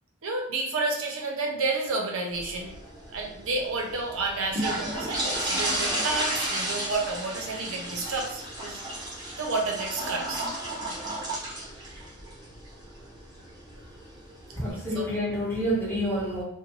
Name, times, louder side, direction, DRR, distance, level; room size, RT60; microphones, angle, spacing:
voice 1, 0.2-2.8 3.1-8.8 9.4-10.4 14.6-15.1, right 3 dB, 70° right, 1 dB, 0.6 m, -30 dB
sound 1, 2.3-14.7, right 1 dB, 20° right, 0.9 m, -33 dB
voice 2, 14.5-16.4, equal, 10° left, -7 dB, 0.9 m, -28 dB
2.6 x 2.1 x 3.0 m, 0.80 s
head